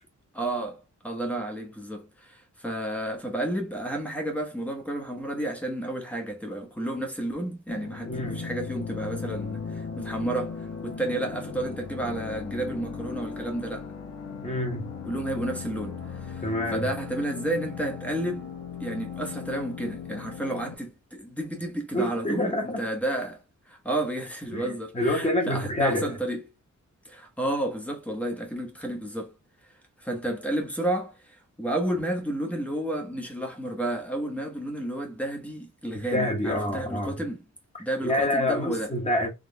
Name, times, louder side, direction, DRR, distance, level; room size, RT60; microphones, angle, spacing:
voice 1, 0.3-13.9 15.0-18.5 18.8-26.4 27.0-29.3 30.0-37.4 37.8-38.9, right 1 dB, 5° left, 1.0 m, -31 dB
sound 1, 7.7-20.7, left 6 dB, 55° left, 1.0 m, -37 dB
voice 2, 8.1-8.5 14.4-14.9 16.4-16.9 21.9-22.8 24.5-26.2 35.9-37.2 38.0-39.3, left 1 dB, 20° left, 1.3 m, -27 dB
3.7 x 3.3 x 3.3 m
wide cardioid pair, 170°, 30 cm